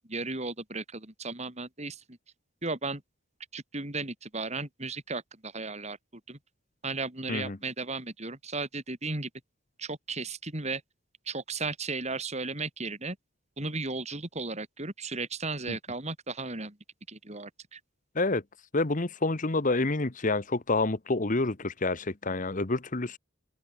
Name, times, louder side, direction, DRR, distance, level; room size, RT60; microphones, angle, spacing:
voice 1, 0.1-2.2 2.6-3.0 3.5-6.4 6.8-9.3 9.8-10.8 11.3-13.2 13.6-16.8 17.1-17.8, right 3 dB, 35° right, 3.9 m, -35 dB
voice 2, 18.7-23.2, left 2 dB, 40° left, 1.1 m, -28 dB
head